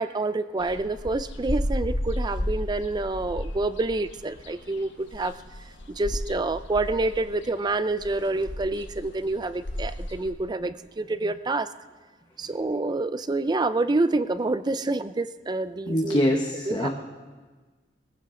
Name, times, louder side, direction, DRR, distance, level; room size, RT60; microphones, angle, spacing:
voice 1, 0.0-5.3 5.9-11.7 12.4-16.4 16.7-16.9, right 2 dB, 20° right, 14 dB, 0.4 m, -27 dB
sound 1, 0.6-10.3, left 1 dB, 75° left, 1.4 m, -33 dB
voice 2, 15.9-16.9, equal, 25° left, 1 dB, 1.0 m, -24 dB
22.0 x 15.0 x 3.8 m, 1.4 s
head